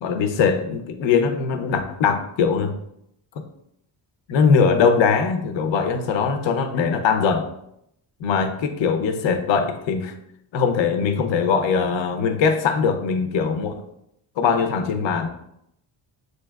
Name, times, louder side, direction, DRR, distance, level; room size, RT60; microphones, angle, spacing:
voice 1, 0.0-2.8 3.4-3.5 4.3-7.5 8.2-10.1 10.5-13.7 14.4-15.3, left 5 dB, 75° left, 7 dB, 0.6 m, -21 dB
7.3 x 2.8 x 2.3 m, 0.77 s
cardioid pair, 115°, 46 cm